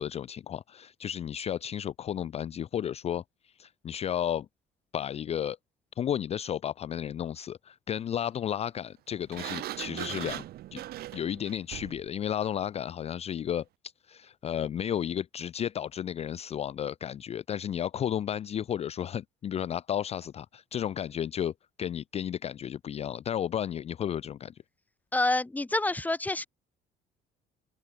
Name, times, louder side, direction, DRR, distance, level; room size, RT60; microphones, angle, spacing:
voice 1, 0.0-4.5 4.9-5.6 6.0-10.4 10.7-10.8 11.1-13.6 14.0-21.5 21.8-24.6, left 9 dB, 40° left, 0.4 m, -33 dB
Sliding door, 9.3-12.1, right 14 dB, 65° right, 1.0 m, -39 dB
voice 2, 25.1-26.5, left 2 dB, 10° left, 1.0 m, -27 dB
cardioid pair, 110°, 17 cm